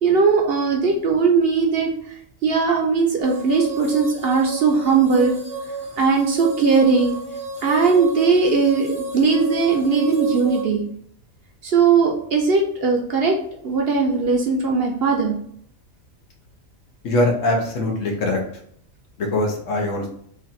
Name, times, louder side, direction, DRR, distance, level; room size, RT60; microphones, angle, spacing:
voice 1, 0.0-2.1 2.4-5.4 6.0-7.2 7.6-10.8 11.6-13.4 13.6-15.3, right 5 dB, 55° right, 1 dB, 0.8 m, -19 dB
sound 1, 3.2-10.6, right 3 dB, 10° right, 0.4 m, -32 dB
voice 2, 17.0-18.4 19.2-20.1, left 1 dB, 75° left, 1 dB, 1.2 m, -22 dB
3.2 x 2.5 x 4.1 m, 0.64 s
omnidirectional pair, 1.3 m